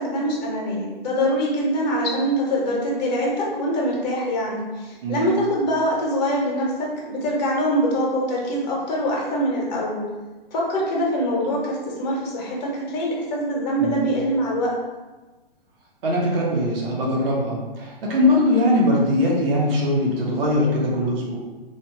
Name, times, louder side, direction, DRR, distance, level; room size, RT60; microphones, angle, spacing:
voice 1, 0.0-10.0 10.5-14.7, equal, 45° left, -3 dB, 0.9 m, -24 dB
voice 2, 16.0-21.4, left 1 dB, 65° right, -4 dB, 0.9 m, -21 dB
2.5 x 2.3 x 2.9 m, 1.2 s
hypercardioid pair, 135°, 30 cm